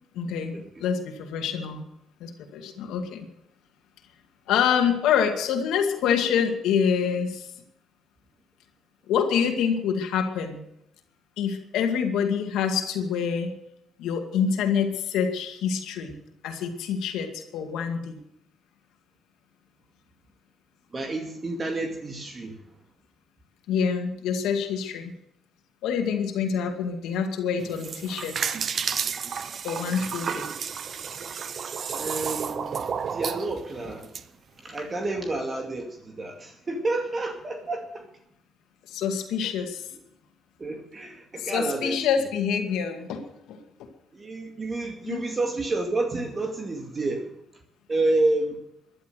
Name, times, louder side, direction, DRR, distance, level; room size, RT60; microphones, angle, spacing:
voice 1, 0.1-0.5 0.8-1.8 2.2-3.2 4.5-7.5 9.1-10.6 11.4-13.5 14.0-16.2 16.4-18.2 23.7-25.1 25.8-28.5 29.6-30.5 38.9-39.8 41.4-43.2 43.5-43.6 45.0-45.2, left 7 dB, 90° left, 4 dB, 2.2 m, -26 dB
voice 2, 20.9-22.6 31.9-34.1 34.6-38.1 39.4-39.5 40.6-42.0 44.1-47.3 47.9-48.6, right 2 dB, 35° right, 3 dB, 2.3 m, -29 dB
sound 1, 27.6-34.2, right 7 dB, 55° right, 0.8 m, -31 dB
14.0 x 11.5 x 6.7 m, 0.77 s
cardioid pair, 90°, 0 cm